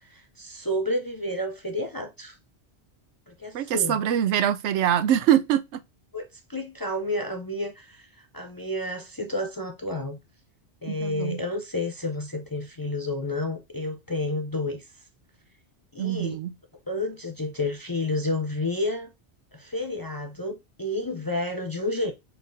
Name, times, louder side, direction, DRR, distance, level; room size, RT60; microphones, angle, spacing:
voice 1, 0.0-2.4 3.3-4.0 6.1-10.2 10.8-14.8 15.9-16.4 16.9-19.1 19.5-22.1, left 2 dB, 30° left, 0.4 m, -30 dB
voice 2, 3.5-5.8 10.9-11.4 16.0-16.5, right 10 dB, 85° right, 0.9 m, -24 dB
6.0 x 3.3 x 2.6 m
omnidirectional pair, 1.1 m